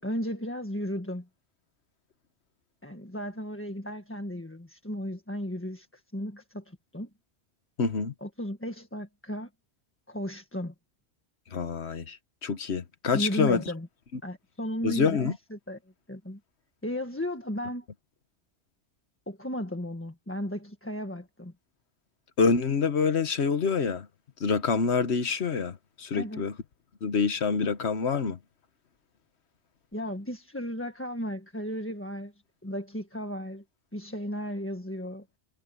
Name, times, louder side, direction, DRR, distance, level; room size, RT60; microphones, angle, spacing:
voice 1, 0.0-1.3 2.8-7.1 8.2-9.5 10.1-10.7 13.1-13.9 14.2-15.8 16.1-16.4 16.8-17.8 19.3-21.5 26.1-26.4 29.9-32.3 32.6-33.6 33.9-35.2, equal, 10° left, 1.5 m, -35 dB
voice 2, 7.8-8.1 11.5-13.6 14.8-15.3 22.4-24.1 24.4-26.5 27.0-28.4, left 5 dB, 85° left, 1.5 m, -26 dB
omnidirectional pair, 1.1 m